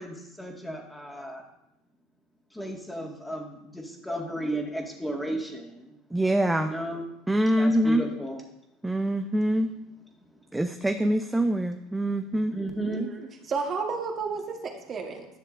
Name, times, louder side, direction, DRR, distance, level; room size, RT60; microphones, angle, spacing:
voice 1, 0.0-1.4 2.5-5.9 6.6-7.0 7.6-8.5 12.5-13.1, right 1 dB, 5° left, 0 dB, 1.7 m, -34 dB
voice 2, 6.1-6.7 7.3-8.0 8.8-9.7 10.5-12.6, right 1 dB, 10° right, 6 dB, 0.5 m, -24 dB
voice 3, 12.7-13.2 13.5-15.3, right 5 dB, 40° right, 2 dB, 1.3 m, -32 dB
10.5 x 6.6 x 2.5 m, 0.83 s
hypercardioid pair, 80°, 0 cm